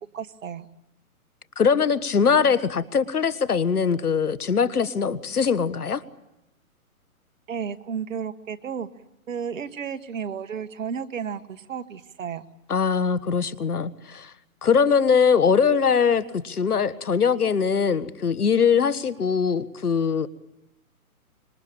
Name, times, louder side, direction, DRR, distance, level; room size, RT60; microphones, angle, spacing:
voice 1, 0.1-0.7 7.5-8.9 9.3-12.4, right 7 dB, 60° right, 10 dB, 1.6 m, -32 dB
voice 2, 1.6-6.0 12.7-14.3 14.6-20.3, left 6 dB, 85° left, 14 dB, 1.5 m, -22 dB
26.0 x 23.5 x 8.8 m, 0.89 s
hypercardioid pair, 140°, 44 cm